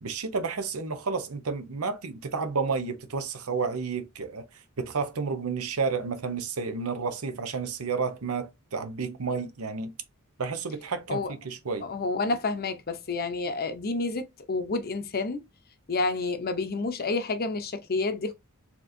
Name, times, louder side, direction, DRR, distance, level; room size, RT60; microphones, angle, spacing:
voice 1, 0.0-4.4 4.8-9.9 10.4-11.9, right 5 dB, 80° right, 0.8 m, -31 dB
voice 2, 11.8-15.4 15.9-18.3, left 3 dB, 45° left, 0.7 m, -29 dB
4.4 x 2.9 x 2.6 m
head